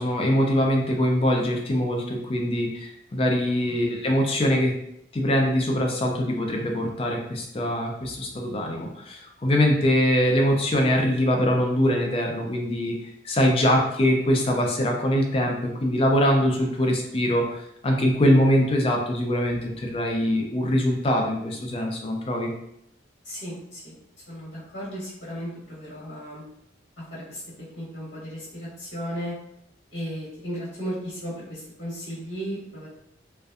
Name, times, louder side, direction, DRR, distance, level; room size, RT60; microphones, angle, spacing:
voice 1, 0.0-2.7 3.1-4.7 5.1-8.9 9.4-13.0 13.3-17.4 17.8-22.5, equal, 30° left, 1 dB, 0.3 m, -23 dB
voice 2, 23.2-24.0 24.3-26.4 27.1-27.4 27.8-29.3 29.9-32.9, equal, 75° left, -8 dB, 0.9 m, -35 dB
2.5 x 2.1 x 2.4 m, 0.78 s
head